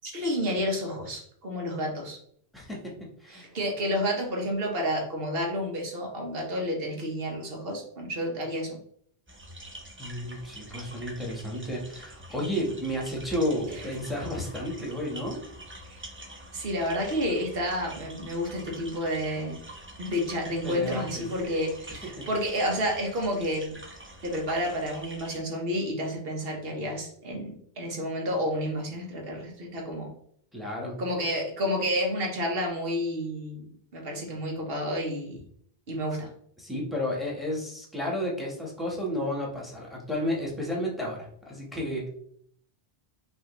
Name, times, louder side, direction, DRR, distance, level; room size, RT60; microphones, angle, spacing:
voice 1, 0.0-2.2 3.3-8.8 13.7-13.8 15.9-16.0 16.5-19.6 20.0-23.7 24.2-30.1 31.0-33.6 33.9-35.4 35.9-36.3, equal, 70° right, 1 dB, 1.3 m, -30 dB
voice 2, 2.5-3.5 10.0-15.4 20.6-21.2 22.0-22.3 30.5-31.0 36.6-42.1, equal, ahead, -2 dB, 1.1 m, -32 dB
sound 1, 9.3-25.4, right 1 dB, 15° right, 0.4 m, -46 dB
5.5 x 2.7 x 3.1 m, 0.65 s
omnidirectional pair, 1.0 m